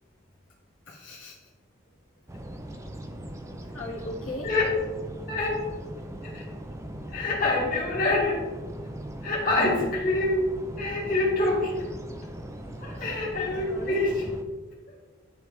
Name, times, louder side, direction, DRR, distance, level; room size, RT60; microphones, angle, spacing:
voice 1, 0.9-1.5 3.7-4.5 12.9-13.1 13.6-14.0, left 1 dB, 85° left, -5 dB, 1.4 m, -38 dB
sound 1, 2.3-14.4, right 1 dB, 15° right, 0.5 m, -39 dB
voice 2, 5.3-5.6 6.2-6.4 7.1-8.5 9.2-10.5 10.8-11.9 12.8-14.2, left 2 dB, 45° left, -5 dB, 2.0 m, -26 dB
10.5 x 3.5 x 3.2 m, 1.3 s
head